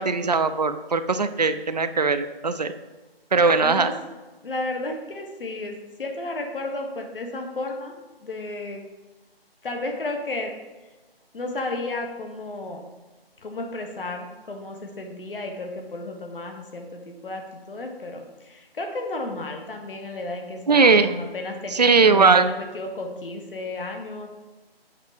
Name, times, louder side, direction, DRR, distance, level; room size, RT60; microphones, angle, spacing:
voice 1, 0.0-2.7 3.3-4.0 20.7-21.1 21.7-22.5, right 4 dB, 45° right, 11 dB, 0.5 m, -19 dB
voice 2, 3.6-3.9 4.4-8.0 8.2-8.8 9.6-10.5 11.3-12.9 13.4-24.3, left 2 dB, 60° left, 3 dB, 1.5 m, -33 dB
8.5 x 5.6 x 4.9 m, 1.2 s
figure-of-eight pair, 160°, 31 cm